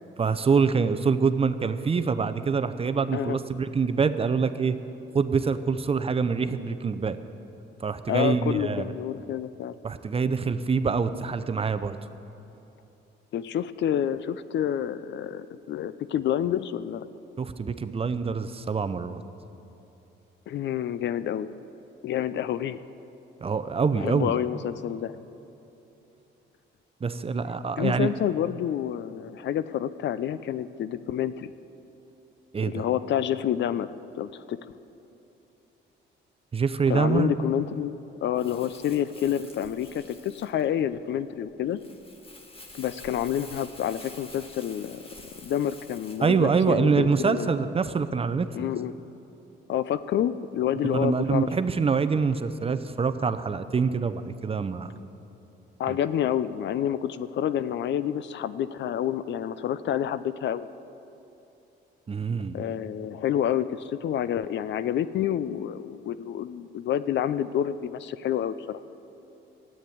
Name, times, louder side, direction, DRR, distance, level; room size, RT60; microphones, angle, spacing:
voice 1, 0.2-4.7 5.1-7.2 7.8-8.9 9.8-12.0 17.4-19.2 23.4-24.3 27.0-28.1 32.5-32.8 36.5-37.4 46.2-48.5 50.8-54.9 55.9-56.0 62.1-62.6, right 5 dB, 30° right, 11 dB, 0.6 m, -25 dB
voice 2, 8.1-9.8 13.3-17.1 20.5-21.5 22.0-22.8 23.9-25.1 27.8-31.5 32.6-33.9 34.1-34.7 36.9-41.8 42.7-45.0 45.4-47.5 48.5-48.9 49.7-51.5 55.8-60.7 62.5-68.8, left 10 dB, 65° left, 14 dB, 0.5 m, -28 dB
Crumpling crinkling, 38.3-46.3, left 2 dB, 30° left, 1.7 m, -48 dB
13.0 x 8.7 x 9.4 m, 2.9 s
cardioid pair, 90°, 20 cm